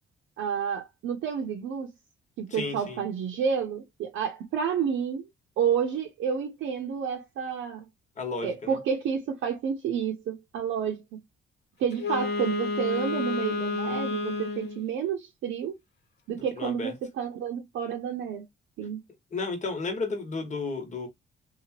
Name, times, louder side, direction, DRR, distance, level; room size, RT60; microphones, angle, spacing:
voice 1, 0.4-1.9 2.4-5.3 5.6-7.9 8.4-11.2 11.8-15.8 16.3-18.4 18.8-19.0, right 7 dB, 75° right, 0.7 m, -30 dB
voice 2, 2.5-3.0 8.2-8.8 16.6-16.9 19.3-21.1, left 4 dB, 35° left, 1.3 m, -33 dB
Wind instrument woodwind instrument, 11.9-14.8, left 3 dB, 60° left, 1.1 m, -30 dB
2.9 x 2.3 x 2.8 m
cardioid pair, 90°, 20 cm